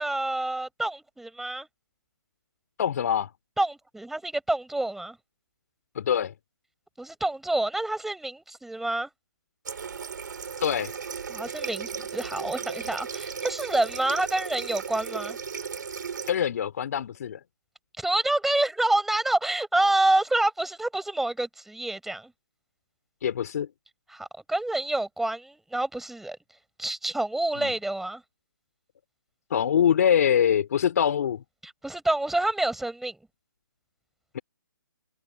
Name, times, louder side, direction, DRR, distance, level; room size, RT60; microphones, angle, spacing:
voice 1, 0.0-1.7 3.6-5.2 7.0-9.1 11.3-15.4 18.0-22.3 24.1-26.4 26.8-28.2 31.6-33.2, right 2 dB, ahead, 5.5 m, -27 dB
voice 2, 2.8-3.3 5.9-6.3 10.6-10.9 16.3-17.4 23.2-23.7 27.6-27.7 29.5-31.4 34.3-34.4, left 9 dB, 50° left, 2.9 m, -24 dB
Water tap faucet, 9.7-16.3, right 6 dB, 60° right, 3.6 m, -36 dB
figure-of-eight pair, 145°, 11 cm